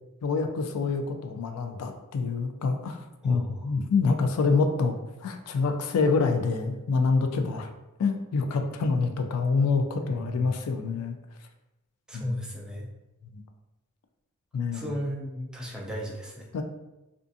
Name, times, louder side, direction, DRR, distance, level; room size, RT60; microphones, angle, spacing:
voice 1, 0.2-7.7 8.0-11.2 12.1-12.3 13.3-13.4 14.5-14.9 16.5-16.6, left 4 dB, 80° left, 5 dB, 0.3 m, -26 dB
voice 2, 3.2-3.7 10.1-10.7 12.1-12.9 14.7-16.5, equal, 5° right, -3 dB, 0.3 m, -35 dB
2.4 x 2.4 x 2.5 m, 0.97 s
head